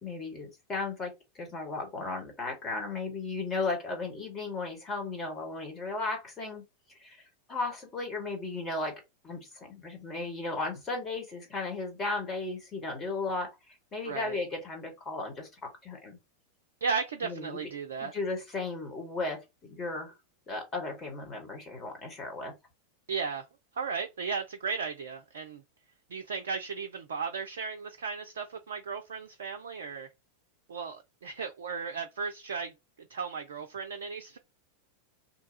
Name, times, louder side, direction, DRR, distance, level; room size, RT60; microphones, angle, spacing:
voice 1, 0.0-6.6 7.0-7.2 7.5-13.5 13.9-16.2 17.2-17.6 18.0-20.1 20.5-22.5, left 3 dB, 20° left, 1.3 m, -35 dB
voice 2, 14.0-14.4 16.8-18.1 23.1-23.5 23.7-25.6 26.1-30.1 30.7-32.7 33.1-34.4, right 5 dB, 65° right, 0.4 m, -35 dB
2.7 x 2.3 x 3.9 m
figure-of-eight pair, 90°, 0 cm